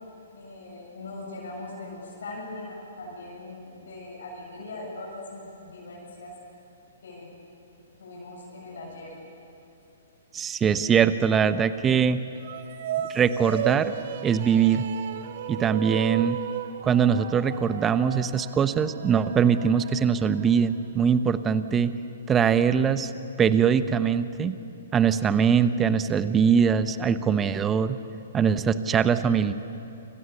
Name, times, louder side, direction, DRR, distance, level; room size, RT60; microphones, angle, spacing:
voice 1, 0.3-6.3 7.0-7.3 8.0-9.1, left 2 dB, 65° left, -4 dB, 7.8 m, -40 dB
voice 2, 10.3-12.2 13.1-13.9 14.2-14.8 15.5-16.4 16.8-21.9 22.3-23.1 23.4-24.6 24.9-28.0 28.3-29.5, right 7 dB, 15° right, 12 dB, 1.0 m, -22 dB
sound 1, 12.4-20.9, right 10 dB, 50° right, 1.3 m, -35 dB
28.5 x 27.0 x 7.0 m, 2.7 s
figure-of-eight pair, 120°, 0 cm